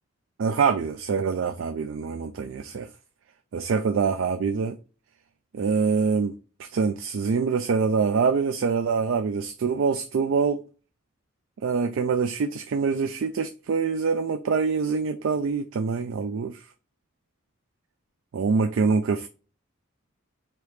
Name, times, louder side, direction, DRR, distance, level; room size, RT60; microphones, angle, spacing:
voice 1, 0.4-2.9 3.5-4.8 5.5-6.3 6.6-10.6 11.6-16.6 18.3-19.3, right 5 dB, 65° right, 0.3 m, -25 dB
4.7 x 2.9 x 3.2 m
head